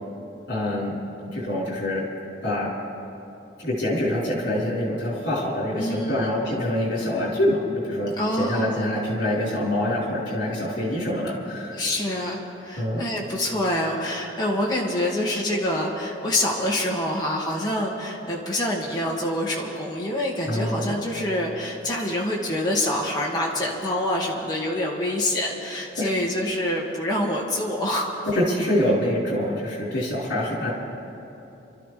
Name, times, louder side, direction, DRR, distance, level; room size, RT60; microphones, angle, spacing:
voice 1, 0.5-1.0 1.3-2.0 2.4-2.7 3.6-11.8 12.8-13.0 20.4-21.0 26.0-26.1 28.3-30.7, left 1 dB, 60° left, -6 dB, 4.5 m, -25 dB
voice 2, 5.8-6.3 8.2-8.9 11.7-28.1, left 1 dB, 20° left, -4 dB, 2.1 m, -26 dB
28.5 x 13.0 x 3.4 m, 2.9 s
head